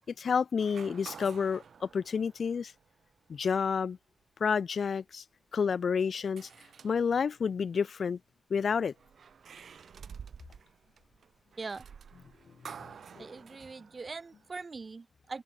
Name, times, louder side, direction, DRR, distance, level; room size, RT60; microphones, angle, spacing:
voice 1, 0.2-2.7 3.3-4.0 4.4-5.2 5.5-6.5 6.8-8.2 8.5-8.9 13.2-13.3, left 6 dB, 65° left, 0.4 m, -29 dB
sound 1, 0.6-3.1 3.7-3.8 6.4-7.4 8.8-14.6, right 7 dB, 75° right, 3.0 m, -50 dB
voice 2, 13.2-15.4, right 4 dB, 40° right, 1.6 m, -41 dB
open air
wide cardioid pair, 105°, 0 cm